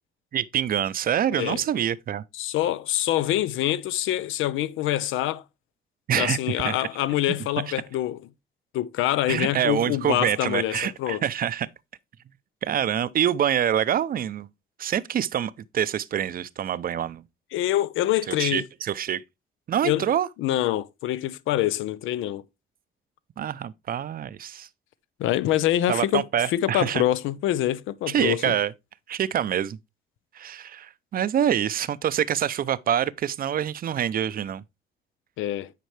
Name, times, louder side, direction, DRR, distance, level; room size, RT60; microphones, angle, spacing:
voice 1, 0.3-2.2 6.1-6.4 6.6-6.9 7.7-7.8 9.3-11.7 12.6-14.5 14.8-17.2 18.3-19.2 19.7-20.3 23.4-24.7 25.9-27.0 28.1-28.7 29.1-29.8 30.3-34.6, right 9 dB, 45° right, 0.5 m, -26 dB
voice 2, 2.3-5.4 6.2-8.2 8.7-11.2 17.5-18.6 19.8-20.1 20.4-22.4 25.2-28.6 35.4-35.7, left 13 dB, 85° left, 0.5 m, -25 dB
9.2 x 4.4 x 3.2 m
cardioid pair, 90°, 20 cm